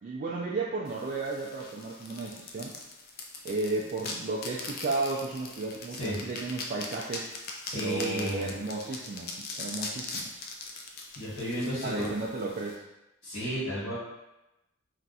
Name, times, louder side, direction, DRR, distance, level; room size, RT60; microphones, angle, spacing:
voice 1, 0.0-2.7 3.4-7.3 7.7-10.4 11.8-12.8, right 3 dB, 40° right, -4 dB, 0.3 m, -33 dB
sound 1, 0.9-12.7, left 3 dB, 50° left, 0.4 m, -41 dB
voice 2, 7.6-8.5 11.1-12.1 13.2-13.9, equal, 75° left, -9 dB, 1.4 m, -33 dB
2.5 x 2.2 x 4.0 m, 0.95 s
head